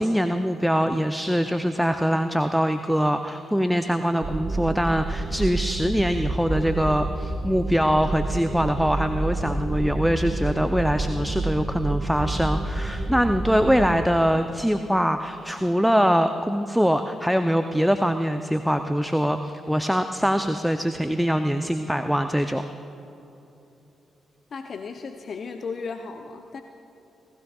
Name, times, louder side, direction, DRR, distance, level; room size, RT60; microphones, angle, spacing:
voice 1, 0.0-22.6, equal, ahead, 8 dB, 0.6 m, -23 dB
sound 1, 4.2-14.0, right 2 dB, 50° right, 1.5 m, -29 dB
voice 2, 24.5-26.6, left 5 dB, 50° left, 6 dB, 0.6 m, -35 dB
19.0 x 15.0 x 2.4 m, 3.0 s
hypercardioid pair, 40°, 0 cm